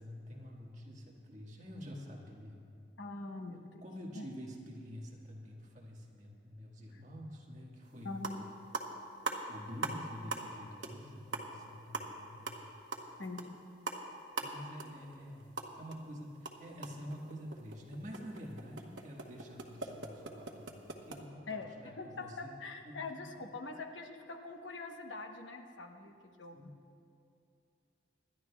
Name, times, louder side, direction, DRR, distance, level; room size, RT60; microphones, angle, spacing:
voice 1, 0.0-2.6 3.8-8.2 9.5-12.6 14.4-22.5 22.8-23.5 26.0-26.1 26.5-26.8, equal, 40° right, -2 dB, 1.7 m, -48 dB
voice 2, 3.0-3.8 4.1-4.3 6.9-7.0 8.0-8.4 13.2-13.6 21.5-21.7 22.0-26.6, left 3 dB, 90° left, 3 dB, 1.1 m, -43 dB
sound 1, 7.8-7.9 8.1-8.5 8.7-10.0 10.3-10.6 10.8-11.0 11.3-16.0 16.3-21.2, right 3 dB, 85° right, 1.1 m, -41 dB
26.5 x 11.5 x 2.3 m, 2.5 s
head